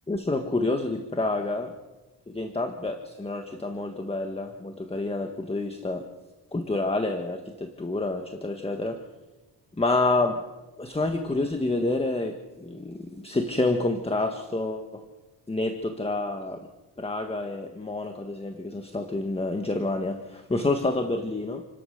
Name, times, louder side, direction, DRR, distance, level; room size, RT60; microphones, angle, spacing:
voice 1, 0.1-1.8 2.3-6.1 6.5-9.1 9.8-10.4 10.8-15.0 15.5-16.7 17.0-21.6, left 2 dB, 15° left, 6 dB, 1.5 m, -28 dB
29.0 x 13.5 x 6.6 m, 1.2 s
cardioid pair, 110°, 43 cm